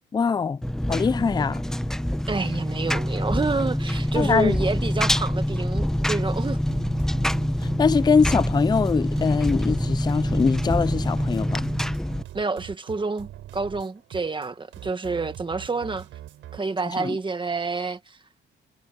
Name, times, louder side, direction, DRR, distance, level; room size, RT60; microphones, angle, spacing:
voice 1, 0.1-0.6 0.9-1.6 4.2-4.6 7.8-11.6 17.0-17.2, left 5 dB, 20° left, 0.4 m, -22 dB
Engine, 0.6-12.2, equal, ahead, 0.9 m, -25 dB
voice 2, 2.3-6.6 12.3-16.1 16.5-18.2, right 4 dB, 25° right, 1.7 m, -28 dB
sound 1, 6.7-16.6, right 13 dB, 80° right, 6.2 m, -42 dB
cardioid pair, 90°, 20 cm